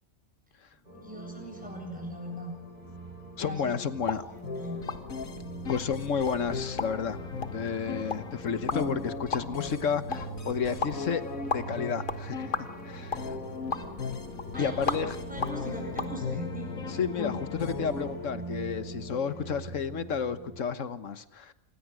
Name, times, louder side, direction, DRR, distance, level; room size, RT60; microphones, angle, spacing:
sound 1, 0.8-20.6, right 1 dB, 30° right, 8.0 m, -43 dB
voice 1, 1.0-2.6 3.4-3.7 4.1-4.8 14.5-14.9 15.3-16.8, equal, 5° right, 1 dB, 7.9 m, -40 dB
voice 2, 3.4-4.2 5.7-7.2 7.5-11.2 11.5-13.3 14.6-15.1 16.9-21.5, left 6 dB, 70° left, 12 dB, 1.6 m, -31 dB
sound 2, 4.0-16.1, left 4 dB, 40° left, 1.5 m, -38 dB
sound 3, 4.4-18.1, left 3 dB, 85° left, 2.3 m, -38 dB
27.5 x 20.5 x 6.3 m, 0.72 s
omnidirectional pair, 1.4 m